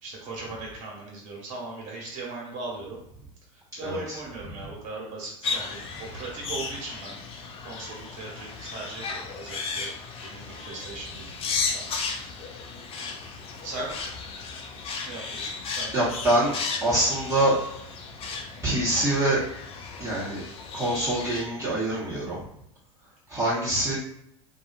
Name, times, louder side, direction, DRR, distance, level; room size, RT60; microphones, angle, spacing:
voice 1, 0.0-3.0 3.8-7.2 7.6-9.9 10.2-11.3 11.7-11.9 13.6-13.9 15.0-15.9, right 2 dB, 45° right, -3 dB, 1.4 m, -38 dB
voice 2, 3.8-4.2 4.5-4.6 15.9-16.5 16.8-17.6 18.6-19.4 20.0-20.4 20.7-22.4 23.3-23.9, right 1 dB, 15° right, -11 dB, 1.3 m, -25 dB
sound 1, 5.4-21.4, left 4 dB, 35° left, 0.5 m, -35 dB
2.6 x 2.4 x 2.5 m, 0.77 s
hypercardioid pair, 90°, 17 cm